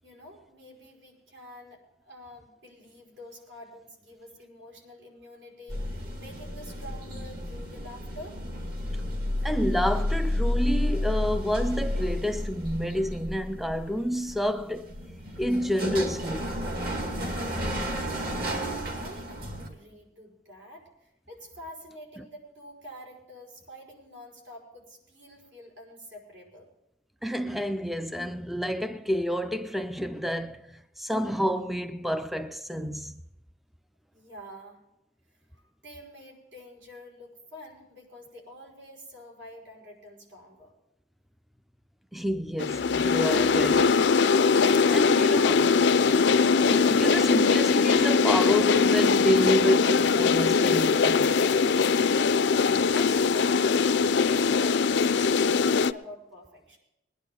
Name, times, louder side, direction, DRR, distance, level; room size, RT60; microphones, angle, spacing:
voice 1, 0.0-8.4 18.1-18.5 18.9-26.7 34.1-34.8 35.5-40.7 52.2-56.8, left 1 dB, 75° right, 5.2 m, -47 dB
sound 1, 5.7-19.7, left 1 dB, 55° right, 2.1 m, -31 dB
voice 2, 9.4-14.9 15.4-16.5 22.2-22.3 27.2-33.2 42.1-44.0 44.9-45.6 46.7-51.4, equal, ahead, 0.4 m, -29 dB
sound 2, 42.6-55.9, left 5 dB, 70° left, 0.5 m, -22 dB
21.0 x 10.5 x 3.7 m
head